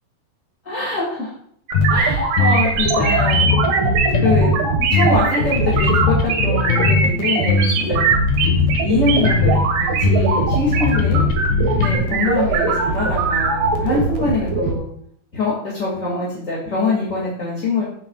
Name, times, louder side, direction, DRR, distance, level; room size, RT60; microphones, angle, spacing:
voice 1, 0.6-1.3 1.9-3.6 4.2-4.5 4.9-8.0 8.8-11.2 11.8-14.8 15.3-17.8, left 3 dB, 25° left, -5 dB, 2.0 m, -23 dB
sound 1, 1.7-2.0 2.4-4.6 4.9-7.1 7.5-9.7 10.0-12.0, left 4 dB, 85° left, 3.3 m, -19 dB
sound 2, 1.7-14.7, right 4 dB, 85° right, 3.5 m, -21 dB
sound 3, 8.3-14.7, right 2 dB, 60° right, 1.7 m, -29 dB
13.5 x 7.7 x 2.4 m, 0.66 s
omnidirectional pair, 4.6 m